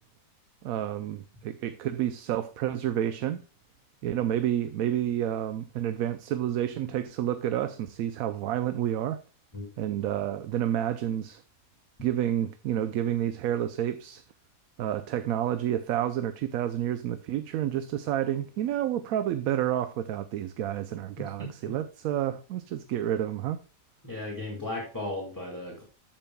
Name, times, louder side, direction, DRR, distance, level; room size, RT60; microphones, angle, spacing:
voice 1, 0.6-3.4 4.0-9.2 9.8-11.4 12.0-14.2 14.8-23.6, right 11 dB, 80° right, 1.0 m, -29 dB
voice 2, 21.2-21.5 24.0-25.8, left 2 dB, 15° left, 2.0 m, -36 dB
13.5 x 5.6 x 2.2 m
omnidirectional pair, 1.5 m